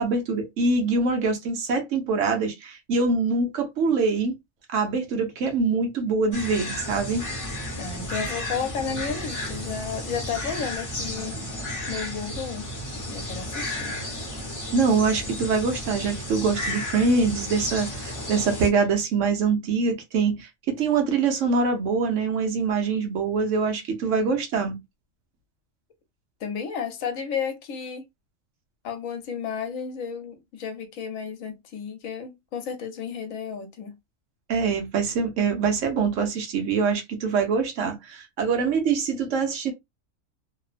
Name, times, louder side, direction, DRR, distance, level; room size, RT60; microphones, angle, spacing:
voice 1, 0.0-4.4 4.7-7.3 14.7-24.8 34.5-39.7, right 4 dB, 70° right, 1.0 m, -24 dB
sound 1, 6.3-18.7, left 1 dB, 20° left, 0.7 m, -33 dB
voice 2, 7.8-11.6 11.9-12.7 13.1-13.9 26.4-28.1 28.8-34.0, left 6 dB, 80° left, 1.1 m, -32 dB
2.9 x 2.0 x 2.4 m
omnidirectional pair, 1.4 m